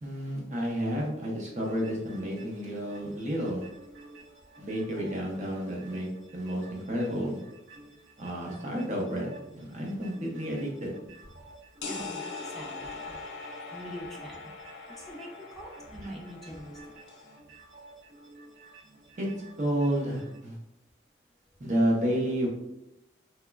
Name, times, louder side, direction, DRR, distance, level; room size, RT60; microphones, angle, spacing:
voice 1, 0.0-3.7 4.6-6.1 6.3-7.4 8.2-10.9 19.2-19.3 19.6-20.6 21.6-22.5, equal, 40° right, -1 dB, 0.6 m, -30 dB
sound 1, 1.5-20.4, right 3 dB, 90° right, 1.1 m, -53 dB
sound 2, 11.8-17.4, left 4 dB, 75° left, 0.4 m, -41 dB
voice 2, 11.8-12.2 12.5-13.2 13.7-14.5 15.0-16.8, equal, ahead, -2 dB, 0.4 m, -43 dB
2.9 x 2.1 x 2.3 m, 0.85 s
head